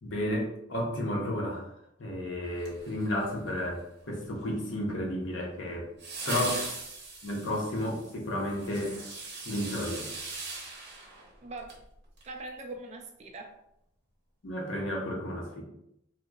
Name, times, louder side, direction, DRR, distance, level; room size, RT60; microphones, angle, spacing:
voice 1, 0.0-1.7 2.0-5.9 6.3-6.6 7.2-9.0 9.4-10.1 14.4-15.6, left 1 dB, 65° left, -1 dB, 0.7 m, -32 dB
sound 1, 2.6-3.5 6.0-11.8 12.2-12.3, right 3 dB, 55° right, 0.7 m, -40 dB
voice 2, 6.2-6.6 11.4-11.8 12.3-13.6, right 2 dB, 35° right, 2 dB, 0.3 m, -42 dB
2.8 x 2.0 x 2.3 m, 0.79 s
head